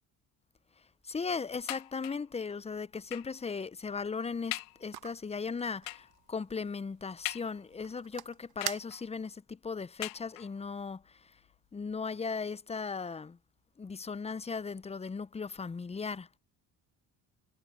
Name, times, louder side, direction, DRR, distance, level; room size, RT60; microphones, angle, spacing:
voice 1, 1.1-11.0 11.7-13.4 13.8-16.3, left 5 dB, 15° left, 0.5 m, -37 dB
sound 1, 1.7-2.3 3.1-3.4 4.0-4.1 4.5-4.9 5.9-6.2 7.2-7.9 8.6-9.2 10.0-10.7 11.5-11.6 11.9-12.0, left 22 dB, 85° left, 1.5 m, -41 dB
sound 2, 4.2-9.4, right 12 dB, 55° right, 1.6 m, -46 dB
supercardioid pair, 70°, 43 cm